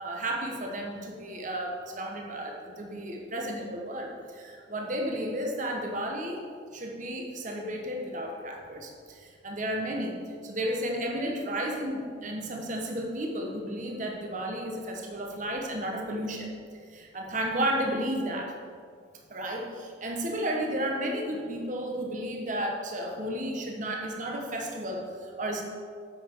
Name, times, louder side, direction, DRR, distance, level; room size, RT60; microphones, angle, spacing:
voice 1, 0.0-6.4 6.7-10.2 10.4-16.5 16.9-18.5 19.3-25.6, right 1 dB, 40° right, 1 dB, 1.1 m, -33 dB
9.8 x 7.4 x 4.7 m, 2.1 s
head